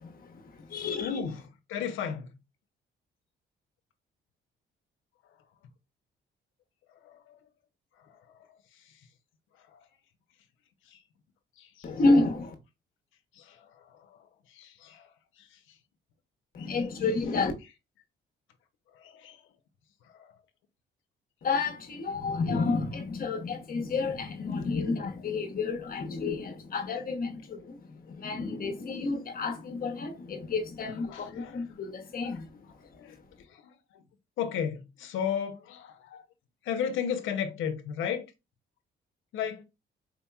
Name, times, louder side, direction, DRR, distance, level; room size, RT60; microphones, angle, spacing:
voice 1, 0.0-1.2 11.8-12.5 16.5-17.5 21.4-32.5, left 3 dB, 45° left, 0.8 m, -30 dB
voice 2, 0.7-2.3 7.0-7.4 8.0-8.1 9.7-9.8 10.9-11.0 11.6-11.9 13.4-14.2 14.5-15.1 15.4-15.5 16.6-16.7 18.9-19.4 20.1-20.3 28.8-29.1 31.1-31.6 32.2-32.4 33.0-33.2 33.5-34.0 34.4-36.3 36.6-38.2 39.3-39.6, left 8 dB, 85° left, 0.6 m, -35 dB
4.1 x 2.8 x 2.2 m
cardioid pair, 90°, 20 cm